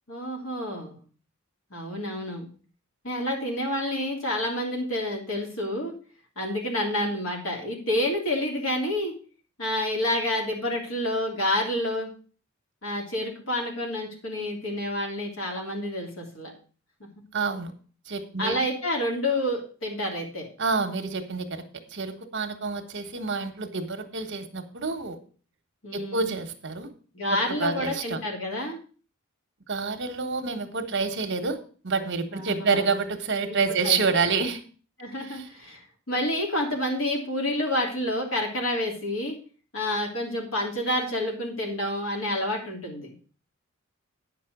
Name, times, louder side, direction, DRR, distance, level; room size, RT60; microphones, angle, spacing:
voice 1, 0.1-1.0 1.7-2.5 3.0-5.9 6.4-9.1 9.6-12.1 12.8-16.5 17.0-17.1 18.4-20.5 25.8-26.3 27.1-28.8 32.3-32.9 33.5-33.6 33.8-34.2 35.0-35.8 36.1-39.4 39.7-43.1, left 1 dB, 70° left, 0 dB, 3.1 m, -29 dB
voice 2, 17.3-17.7 18.1-18.6 20.6-21.6 21.9-25.2 25.9-26.9 27.3-28.2 29.7-31.6 31.8-34.6 35.3-35.5, right 4 dB, 60° right, 7 dB, 1.3 m, -28 dB
9.3 x 6.0 x 6.0 m, 0.39 s
head